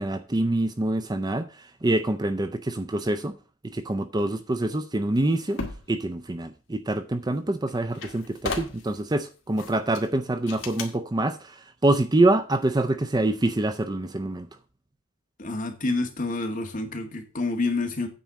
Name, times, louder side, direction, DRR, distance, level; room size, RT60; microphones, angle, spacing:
voice 1, 0.0-3.3 3.6-5.6 5.9-14.5, right 2 dB, 20° right, 0.5 m, -25 dB
sound 1, 5.2-5.9 7.3-7.4 7.7-9.0 9.6-10.1 10.5-10.9, left 3 dB, 60° left, 2.1 m, -35 dB
voice 2, 15.4-18.1, left 3 dB, 40° left, 1.8 m, -28 dB
9.2 x 4.3 x 7.4 m
head